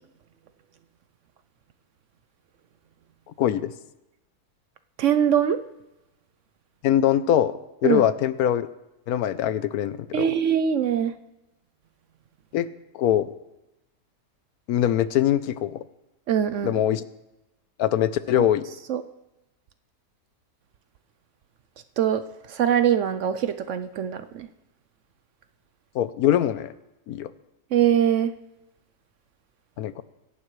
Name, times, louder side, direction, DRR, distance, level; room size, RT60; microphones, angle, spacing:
voice 1, 3.4-3.7 6.8-8.7 9.1-10.3 12.5-12.7 12.9-13.3 14.7-15.8 16.6-17.0 17.8-18.7 25.9-26.7 27.1-27.3 29.8-30.0, left 11 dB, 80° left, 14 dB, 1.1 m, -22 dB
voice 2, 5.0-5.6 7.8-8.0 10.1-11.1 16.3-16.8 18.4-18.5 18.9-19.0 22.0-22.2 22.5-24.5 27.7-28.3, right 9 dB, 65° right, 11 dB, 0.8 m, -22 dB
25.5 x 11.0 x 3.2 m, 0.96 s
omnidirectional pair, 1.6 m